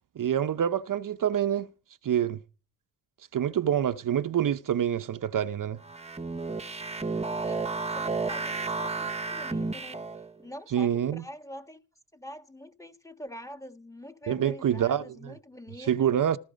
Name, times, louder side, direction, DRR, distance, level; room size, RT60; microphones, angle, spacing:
voice 1, 0.2-1.7 2.0-2.4 3.3-5.8 10.7-11.2 14.3-15.3 15.8-16.4, right 9 dB, 60° right, 0.8 m, -26 dB
sound 1, 5.8-10.3, right 3 dB, 15° right, 1.1 m, -32 dB
voice 2, 7.4-10.1 10.4-11.8 12.1-16.1, equal, 10° left, 1.5 m, -45 dB
18.5 x 15.0 x 5.1 m
wide cardioid pair, 120°, 37 cm